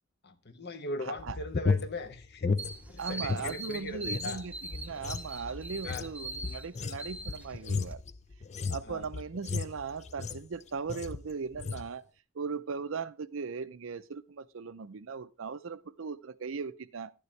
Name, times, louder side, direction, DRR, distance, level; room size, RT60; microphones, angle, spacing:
voice 1, 0.2-2.6 2.9-4.4 5.8-6.1 8.8-9.1, left 2 dB, 55° left, 1.1 m, -39 dB
voice 2, 1.1-1.4 3.0-8.0 8.6-12.0 12.3-17.1, right 5 dB, 75° right, 0.6 m, -38 dB
sound 1, 1.2-3.5 3.8-10.5 10.9-11.3 11.5-11.9, left 4 dB, 35° left, 0.5 m, -34 dB
sound 2, 2.6-7.9, right 2 dB, 10° right, 0.6 m, -42 dB
12.0 x 9.7 x 3.2 m
head